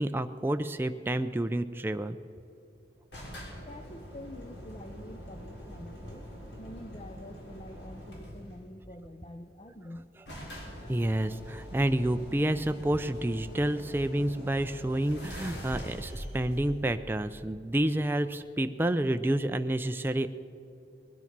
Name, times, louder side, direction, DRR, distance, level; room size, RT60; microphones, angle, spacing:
voice 1, 0.0-2.2 10.9-20.3, right 1 dB, 10° right, 9 dB, 0.4 m, -29 dB
sound 1, 3.1-8.6 9.6-9.7 9.9-10.0 10.3-17.7, equal, 70° left, 3.5 m, -44 dB
voice 2, 3.6-6.3 6.6-10.1 10.8-10.9, left 1 dB, 30° left, 7 dB, 0.6 m, -47 dB
20.5 x 9.8 x 6.0 m, 2.9 s
head